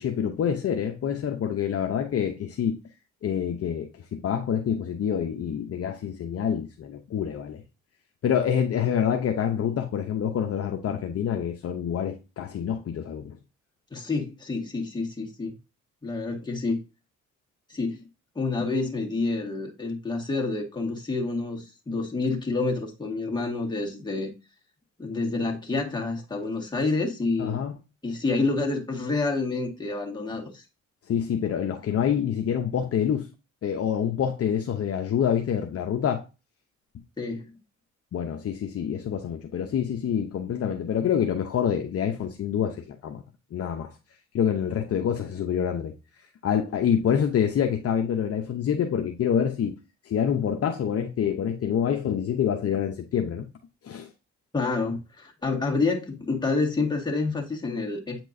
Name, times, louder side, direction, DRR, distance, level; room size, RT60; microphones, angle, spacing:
voice 1, 0.0-2.8 3.2-7.6 8.2-13.4 27.4-27.7 31.1-33.3 33.6-36.2 38.1-43.2 43.5-43.9 44.3-45.9 46.4-49.8 50.1-53.5 53.8-54.1, left 8 dB, 50° left, 0.8 m, -26 dB
voice 2, 13.9-15.5 16.0-16.8 17.7-18.0 18.4-24.3 25.0-27.6 28.0-30.6 37.2-37.5 54.5-58.2, left 3 dB, 15° left, 1.8 m, -28 dB
8.4 x 4.5 x 2.7 m
cardioid pair, 90°, 30 cm